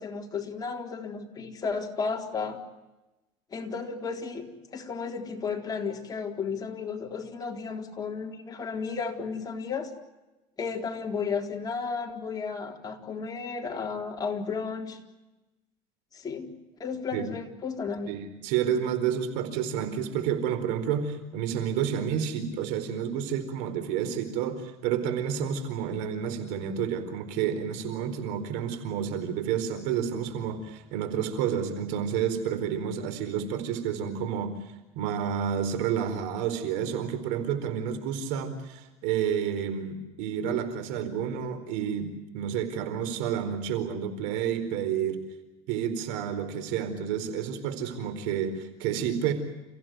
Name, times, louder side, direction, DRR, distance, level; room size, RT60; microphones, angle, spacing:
voice 1, 0.0-2.6 3.5-9.9 10.6-15.0 16.1-16.5 16.8-18.1, left 5 dB, 25° left, 2 dB, 3.9 m, -33 dB
voice 2, 18.1-34.5 34.9-45.2 45.7-49.3, right 8 dB, 85° right, 10 dB, 4.5 m, -30 dB
30.0 x 16.0 x 9.3 m, 1.0 s
cardioid pair, 120°, 14 cm